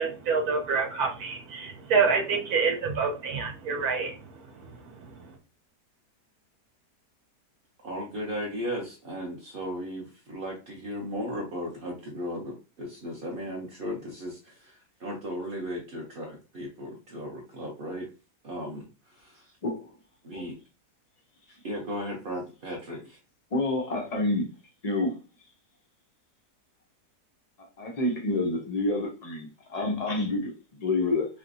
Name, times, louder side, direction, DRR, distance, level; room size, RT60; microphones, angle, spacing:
voice 1, 0.0-5.3, right 5 dB, 70° right, 1.1 m, -28 dB
voice 2, 7.8-18.1 18.4-19.6 20.2-20.6 21.6-23.2, equal, 55° right, 0.6 m, -36 dB
voice 3, 19.6-19.9 20.3-20.4 23.5-24.4 24.8-25.1 27.8-31.3, left 2 dB, 75° left, 0.3 m, -28 dB
3.3 x 2.9 x 2.6 m
omnidirectional pair, 1.8 m